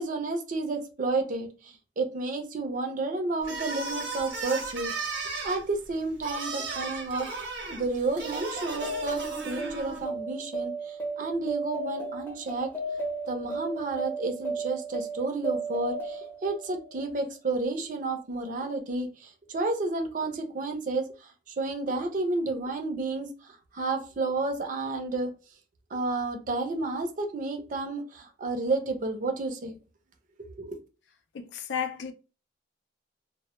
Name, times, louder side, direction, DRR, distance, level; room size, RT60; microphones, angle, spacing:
voice 1, 0.0-4.9 5.4-7.3 7.7-12.7 13.3-21.1 21.5-23.3 23.7-25.3 25.9-29.8 30.6-30.7, right 3 dB, 45° right, 0.5 m, -31 dB
sound 1, 3.4-10.0, right 3 dB, 85° right, 0.8 m, -35 dB
sound 2, 8.2-17.2, right 2 dB, 10° left, 0.6 m, -35 dB
voice 2, 31.3-32.1, left 7 dB, 80° left, 0.4 m, -33 dB
2.1 x 2.0 x 2.9 m
head